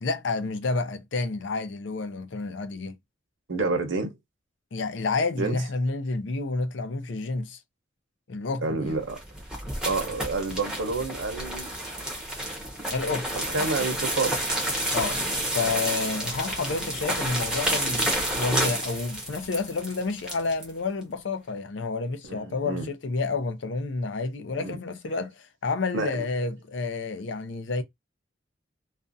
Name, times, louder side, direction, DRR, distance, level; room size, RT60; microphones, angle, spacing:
voice 1, 0.0-3.0 4.7-7.6 8.3-9.0 12.9-13.3 14.9-15.2 15.5-27.8, left 3 dB, 70° left, 0.5 m, -30 dB
voice 2, 3.5-4.2 5.4-5.6 8.6-9.2 9.8-11.7 13.3-14.4 22.2-22.9 24.6-24.8 25.9-26.2, right 3 dB, 75° right, 0.7 m, -29 dB
sound 1, 8.9-20.7, right 1 dB, 5° right, 0.7 m, -30 dB
2.4 x 2.2 x 2.6 m
head